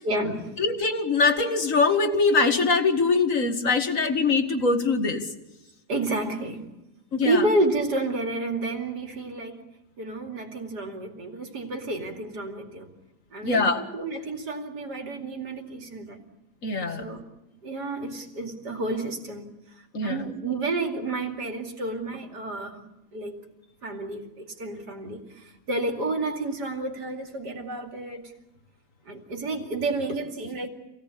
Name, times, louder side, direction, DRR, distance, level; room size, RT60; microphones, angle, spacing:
voice 1, 0.0-0.6 5.9-6.7 7.2-9.6 10.0-12.9 13.3-16.2 16.9-17.3 17.6-22.8 23.1-23.4 23.8-28.3 29.0-30.7, right 2 dB, 80° right, 3.1 m, -30 dB
voice 2, 0.6-5.2 7.1-7.4 13.4-13.8 16.6-17.0 19.9-20.2, left 4 dB, 50° left, 2.4 m, -22 dB
26.5 x 17.5 x 8.4 m
omnidirectional pair, 1.7 m